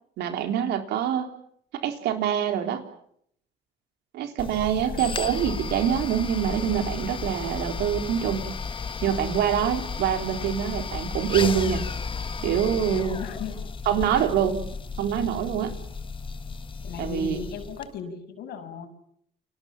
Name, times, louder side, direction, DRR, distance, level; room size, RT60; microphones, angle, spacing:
voice 1, 0.2-1.3 1.8-2.8 4.1-8.4 9.0-11.8 12.4-13.2 13.9-14.6 15.0-15.7 17.0-17.4, right 9 dB, 80° right, 6 dB, 3.8 m, -25 dB
sound 1, 4.4-17.9, left 5 dB, 30° left, 1.8 m, -33 dB
voice 2, 4.7-5.1 12.9-13.6 16.8-18.9, left 6 dB, 75° left, 7 dB, 6.7 m, -36 dB
29.5 x 24.5 x 7.4 m, 0.71 s
cardioid pair, 110°, 17 cm